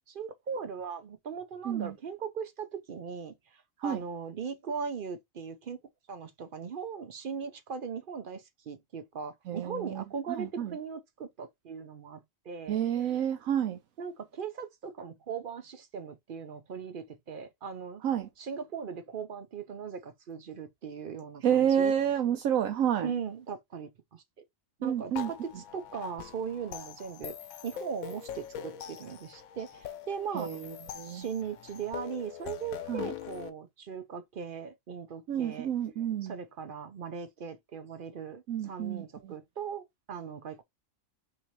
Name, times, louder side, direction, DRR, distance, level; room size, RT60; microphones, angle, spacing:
voice 1, 0.1-3.3 3.8-5.8 6.1-12.8 14.0-18.0 18.4-21.9 23.0-24.2 24.8-27.4 27.6-30.6 31.0-35.7 36.2-40.6, right 6 dB, 50° right, 0.6 m, -39 dB
voice 2, 1.6-1.9 3.8-4.0 9.5-10.8 12.7-13.8 18.0-18.3 21.4-23.1 24.8-25.3 30.3-31.2 32.9-33.1 35.3-36.3 38.5-39.3, right 9 dB, 85° right, 1.1 m, -29 dB
sound 1, 25.1-33.5, left 9 dB, 90° left, 1.1 m, -42 dB
5.9 x 2.7 x 3.0 m
omnidirectional pair, 1.4 m